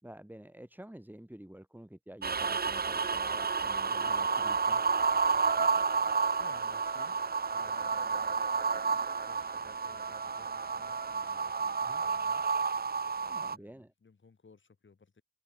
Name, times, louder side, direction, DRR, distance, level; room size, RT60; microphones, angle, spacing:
voice 1, 0.0-4.8 11.6-12.0 13.3-13.9, right 1 dB, 10° right, 4.3 m, -50 dB
sound 1, 2.2-13.6, right 5 dB, 50° right, 0.8 m, -30 dB
sound 2, 5.5-11.2 11.6-12.0, left 2 dB, 30° left, 7.1 m, -67 dB
voice 2, 6.4-7.2 7.5-8.5 8.9-12.4 13.2-15.2, left 4 dB, 70° left, 5.7 m, -58 dB
open air
cardioid pair, 50°, 20 cm